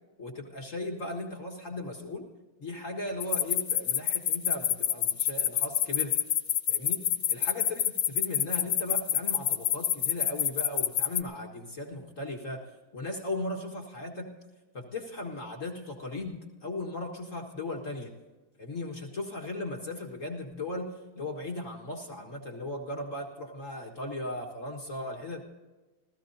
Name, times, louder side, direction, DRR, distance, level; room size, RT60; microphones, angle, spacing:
voice 1, 0.2-2.3 2.6-6.2 6.7-14.3 14.7-18.1 18.6-25.4, left 2 dB, 40° left, 0 dB, 1.8 m, -37 dB
sound 1, 3.2-11.2, left 11 dB, 75° left, 1.6 m, -26 dB
28.0 x 15.5 x 2.7 m, 1.2 s
omnidirectional pair, 2.2 m